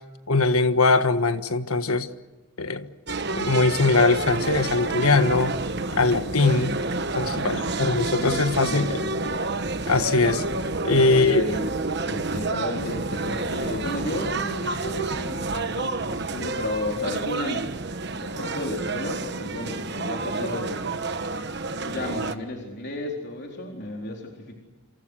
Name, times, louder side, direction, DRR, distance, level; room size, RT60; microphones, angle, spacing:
voice 1, 0.3-2.1 2.6-2.9 3.3-5.6 6.0-6.8 7.1-9.0 9.9-10.4 10.8-11.4, left 3 dB, 85° left, 10 dB, 1.5 m, -21 dB
sound 1, 3.1-22.3, right 3 dB, 50° right, 1.3 m, -29 dB
voice 2, 7.3-7.8 8.2-9.1 10.9-11.7 12.1-17.7 18.2-21.0 21.9-24.5, left 1 dB, 50° left, 0 dB, 4.1 m, -33 dB
27.5 x 27.0 x 6.5 m, 1.2 s
head